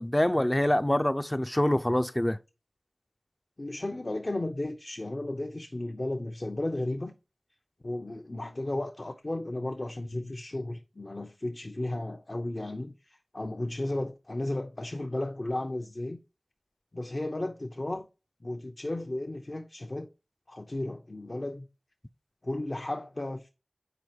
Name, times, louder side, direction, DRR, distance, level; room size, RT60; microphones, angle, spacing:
voice 1, 0.0-2.4, left 1 dB, 20° left, 0.5 m, -25 dB
voice 2, 3.6-7.1 7.8-16.2 16.9-18.1 18.4-20.1 20.5-21.7 22.4-23.5, left 1 dB, 50° left, 0.9 m, -34 dB
8.0 x 5.0 x 4.5 m
wide cardioid pair, 55°, 0 cm